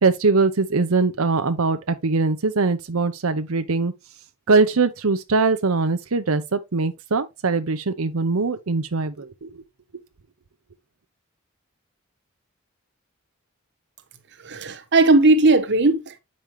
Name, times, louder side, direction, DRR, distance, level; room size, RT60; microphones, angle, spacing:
voice 1, 0.0-3.9 4.5-9.5, right 3 dB, 90° right, 0.8 m, -22 dB
voice 2, 14.4-16.2, right 2 dB, 55° right, 1.1 m, -17 dB
8.8 x 5.4 x 3.1 m
head